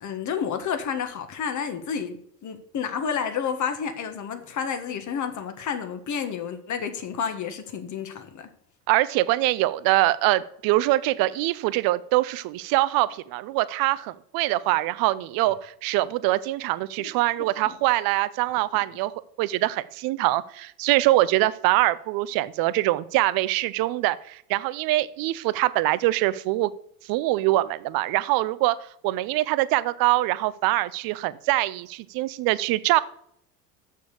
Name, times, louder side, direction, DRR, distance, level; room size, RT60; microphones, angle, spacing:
voice 1, 0.0-8.5 17.0-17.1 17.4-17.7, left 7 dB, 40° left, 1.6 m, -30 dB
voice 2, 8.9-19.1 19.4-26.7 27.0-28.8 29.0-33.0, right 17 dB, 50° right, 0.7 m, -23 dB
6.8 x 6.4 x 6.6 m
hypercardioid pair, 85°, 47 cm